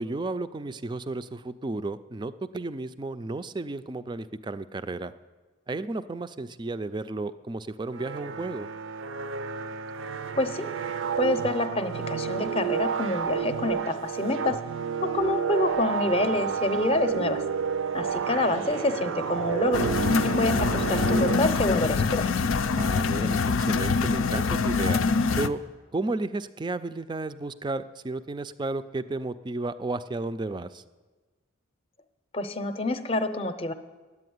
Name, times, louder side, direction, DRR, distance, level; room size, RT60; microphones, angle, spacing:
voice 1, 0.0-5.1 5.7-8.7 22.8-25.0 25.4-25.6 25.9-30.8, right 2 dB, 20° right, 12 dB, 0.3 m, -33 dB
sound 1, 7.9-22.0, right 7 dB, 75° right, 0.5 m, -30 dB
voice 2, 10.4-10.7 11.2-14.6 15.0-17.4 17.9-19.9 20.2-22.3 32.3-33.7, left 2 dB, 30° left, 9 dB, 0.6 m, -27 dB
sound 2, 19.7-25.5, left 4 dB, 85° left, 0.5 m, -24 dB
10.5 x 8.4 x 9.4 m, 1.3 s
head